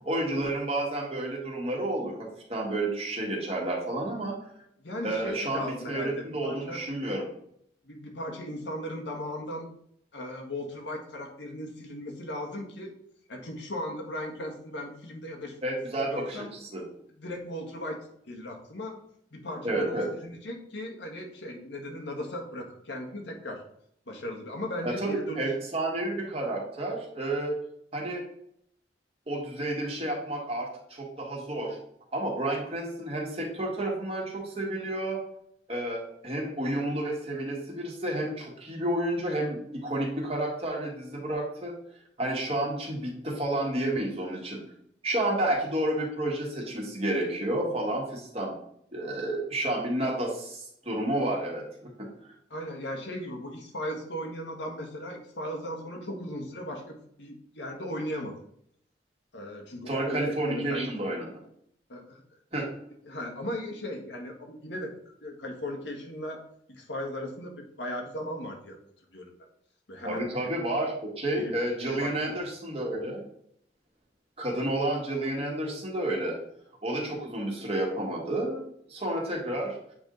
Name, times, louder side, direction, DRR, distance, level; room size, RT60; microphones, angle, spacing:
voice 1, 0.0-4.4 5.0-7.2 15.6-16.8 19.6-20.1 24.8-27.5 27.9-28.2 29.3-31.8 32.1-35.2 35.7-41.7 42.2-44.6 45.0-48.5 48.9-52.1 59.9-61.3 62.5-62.7 70.0-73.2 74.4-76.4 76.8-79.8, right 1 dB, 35° right, -2 dB, 1.7 m, -30 dB
voice 2, 4.8-6.8 7.8-9.7 10.1-12.9 13.3-15.6 16.0-16.5 17.2-19.0 19.3-23.6 24.1-25.4 52.5-58.3 59.3-60.9 61.9-62.2 63.0-64.9 65.2-66.4 66.8-68.8 69.1-69.3 69.9-70.3 71.4-71.5 71.8-72.4, left 1 dB, 80° left, 1 dB, 1.5 m, -37 dB
8.1 x 3.6 x 3.8 m, 0.69 s
head